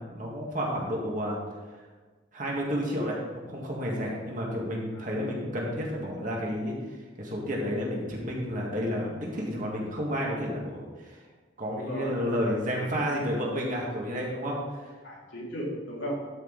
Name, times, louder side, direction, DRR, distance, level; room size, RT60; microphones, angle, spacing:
voice 1, 0.0-1.4 1.7-1.8 2.3-11.2 11.6-14.9, equal, 40° right, -3 dB, 1.9 m, -31 dB
voice 2, 11.7-12.1 12.7-12.9 15.0-16.2, equal, 75° left, -3 dB, 2.6 m, -35 dB
12.0 x 5.6 x 4.1 m, 1.4 s
head